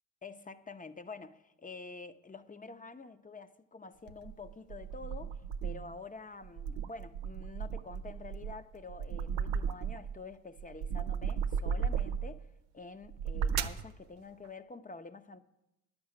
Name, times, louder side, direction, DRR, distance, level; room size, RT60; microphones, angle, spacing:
voice 1, 0.2-15.4, left 3 dB, 20° left, 0.8 m, -48 dB
sound 1, 4.1-6.0 6.4-10.2 10.6-12.4 13.0-13.9, right 7 dB, 90° right, 0.7 m, -35 dB
10.0 x 6.2 x 8.7 m
supercardioid pair, 55°, 41 cm